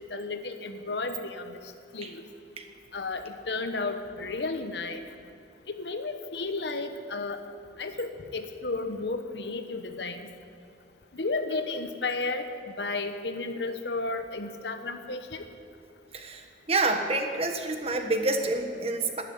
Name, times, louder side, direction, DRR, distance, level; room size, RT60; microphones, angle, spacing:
voice 1, 0.0-1.6 1.9-2.2 2.9-5.1 5.7-7.4 7.8-10.3 11.1-12.4 12.8-15.4, left 3 dB, 70° left, 8 dB, 1.1 m, -33 dB
voice 2, 16.1-19.2, right 2 dB, 35° right, 5 dB, 1.4 m, -28 dB
13.0 x 11.5 x 9.5 m, 2.3 s
head